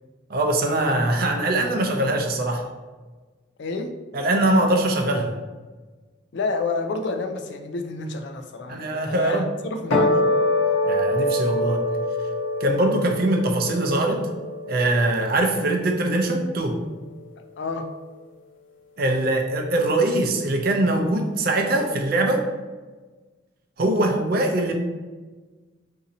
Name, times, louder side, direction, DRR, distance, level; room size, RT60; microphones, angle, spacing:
voice 1, 0.3-2.6 4.1-5.3 8.7-9.5 10.8-11.9 12.6-14.2 14.7-16.8 19.0-22.4 23.8-24.7, right 1 dB, 50° right, 3 dB, 0.5 m, -22 dB
voice 2, 3.6-3.9 6.3-10.2 17.6-17.9, left 3 dB, 60° left, 6 dB, 0.3 m, -29 dB
sound 1, 9.9-16.4, left 1 dB, 85° left, 0.9 m, -25 dB
2.7 x 2.6 x 4.0 m, 1.3 s
head